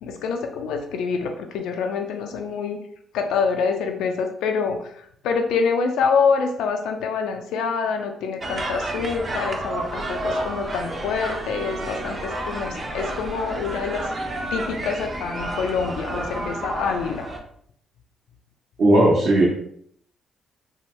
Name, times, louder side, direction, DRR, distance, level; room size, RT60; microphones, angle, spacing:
voice 1, 0.0-2.8 3.1-14.1 14.5-17.4, left 5 dB, 85° left, 5 dB, 0.3 m, -26 dB
sound 1, 8.4-17.4, right 1 dB, 35° right, 0.5 m, -30 dB
voice 2, 18.8-19.4, right 1 dB, 60° right, -7 dB, 0.9 m, -16 dB
2.7 x 2.2 x 3.1 m, 0.67 s
cardioid pair, 90°, 0 cm